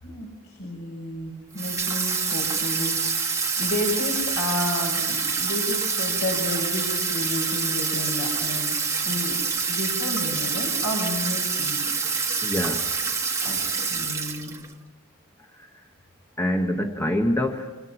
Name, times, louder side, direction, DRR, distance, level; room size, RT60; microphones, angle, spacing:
voice 1, 0.0-3.0 3.6-8.8 9.0-9.4 9.7-11.9 13.4-14.5, left 1 dB, 65° left, 0 dB, 5.5 m, -31 dB
Water tap faucet / Sink (filling or washing), 1.6-14.7, right 5 dB, 15° right, 1.5 m, -26 dB
voice 2, 12.4-12.9 16.4-17.7, left 1 dB, 10° left, 4 dB, 1.2 m, -25 dB
29.5 x 26.0 x 5.7 m, 1.2 s
head